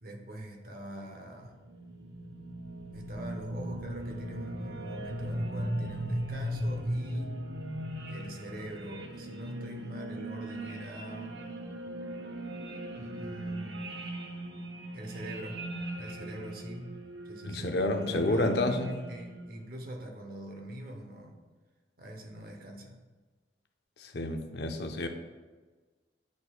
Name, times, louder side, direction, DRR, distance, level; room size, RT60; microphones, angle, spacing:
voice 1, 0.0-1.5 2.9-7.3 8.1-11.4 12.9-14.1 14.9-15.6 16.0-17.8 18.0-21.4 22.0-23.0 24.7-24.8, right 1 dB, 55° right, 2 dB, 0.9 m, -43 dB
sound 1, 1.3-19.6, right 1 dB, 85° right, 0.7 m, -38 dB
voice 2, 17.4-19.0 24.0-25.1, left 2 dB, 65° left, 5 dB, 0.6 m, -29 dB
9.3 x 4.4 x 2.4 m, 1.3 s
head